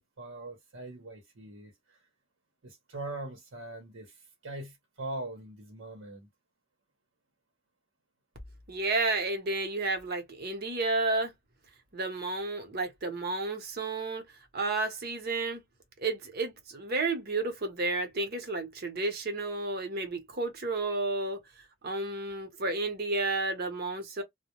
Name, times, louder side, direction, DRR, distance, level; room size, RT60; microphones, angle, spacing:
voice 1, 0.0-2.0 2.6-6.3, right 2 dB, 85° right, 0.8 m, -42 dB
voice 2, 8.7-11.3 11.9-14.2 14.5-15.6 16.0-21.4 21.8-24.2, right 2 dB, 55° right, 0.8 m, -31 dB
2.2 x 2.1 x 2.9 m
head